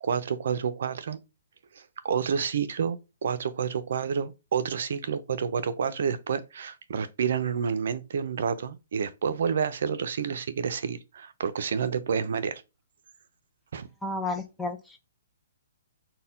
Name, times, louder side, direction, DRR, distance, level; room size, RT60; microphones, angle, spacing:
voice 1, 0.0-1.2 1.7-12.6 13.7-13.9, right 6 dB, 65° right, 0.5 m, -29 dB
voice 2, 14.0-15.0, left 2 dB, 5° left, 0.5 m, -32 dB
4.0 x 2.2 x 3.8 m
hypercardioid pair, 155°, 0 cm